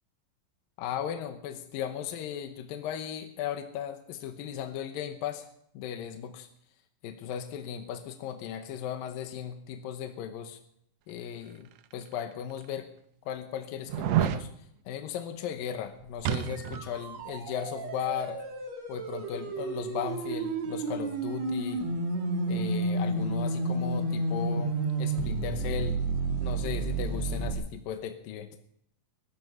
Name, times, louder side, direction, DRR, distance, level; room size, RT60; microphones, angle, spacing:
voice 1, 0.8-5.5 5.7-6.5 7.0-10.6 11.1-12.9 13.3-14.5 14.9-18.4 18.9-21.9 22.5-26.0 26.4-28.5, left 9 dB, 80° left, 7 dB, 2.7 m, -36 dB
sound 1, 11.9-12.0 12.7-12.8 13.9-14.4 16.2-16.9 17.2-17.3, right 11 dB, 85° right, 1.5 m, -28 dB
sound 2, 16.2-27.5, right 2 dB, 55° right, 3.1 m, -31 dB
21.0 x 12.5 x 5.5 m, 0.74 s
omnidirectional pair, 4.1 m